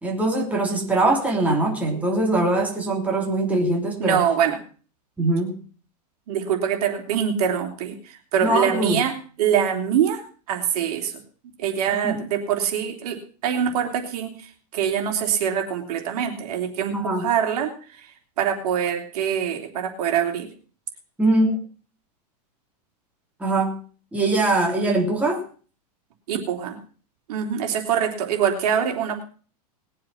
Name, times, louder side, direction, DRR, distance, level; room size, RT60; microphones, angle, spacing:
voice 1, 0.0-4.2 5.2-5.6 8.4-9.0 12.0-12.2 16.9-17.3 21.2-21.6 23.4-23.8 24.1-25.4, right 2 dB, 5° right, -1 dB, 3.4 m, -22 dB
voice 2, 4.0-4.6 6.3-8.0 8.3-10.2 10.5-11.1 11.6-14.3 14.7-17.7 18.4-20.5 26.3-26.8 27.3-29.2, right 8 dB, 70° right, 3 dB, 3.3 m, -24 dB
20.0 x 7.6 x 5.7 m, 0.40 s
supercardioid pair, 140°, 20 cm